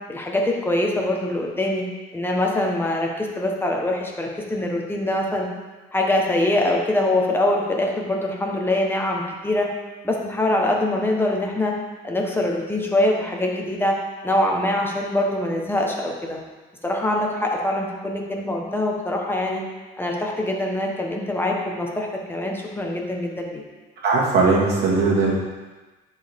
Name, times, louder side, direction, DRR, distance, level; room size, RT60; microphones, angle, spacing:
voice 1, 0.1-5.5 5.9-9.7 10.0-11.8 12.0-16.4 16.8-19.6 20.0-23.6, left 1 dB, 10° left, 0 dB, 1.2 m, -24 dB
voice 2, 24.0-25.3, right 3 dB, 55° right, -4 dB, 2.1 m, -19 dB
10.0 x 4.7 x 3.6 m, 1.2 s
cardioid pair, 120°, 20 cm